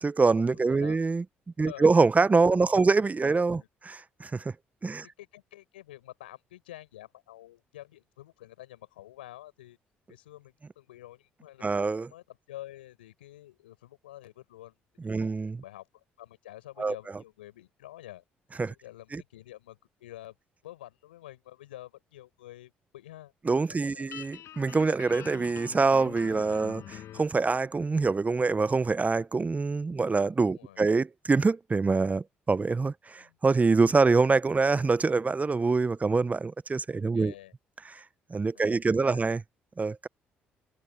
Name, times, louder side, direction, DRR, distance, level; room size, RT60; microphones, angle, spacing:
voice 1, 0.0-1.2 1.6-4.5 4.8-5.0 11.6-12.1 15.0-15.6 16.8-16.9 18.6-18.7 19.1-19.2 23.5-37.3 38.3-39.4 39.8-40.1, right 4 dB, 30° right, 0.9 m, -25 dB
voice 2, 0.5-1.0 1.6-1.9 2.6-2.9 3.2-3.7 4.8-9.8 10.1-11.8 12.1-14.7 15.0-18.2 18.7-20.3 20.6-23.3 23.7-24.2 30.5-30.9 33.2-33.4 36.9-37.5 38.5-39.2, left 15 dB, 90° left, 5.9 m, -48 dB
Guitar, 24.1-27.3, left 11 dB, 65° left, 6.7 m, -45 dB
hypercardioid pair, 50°, 5 cm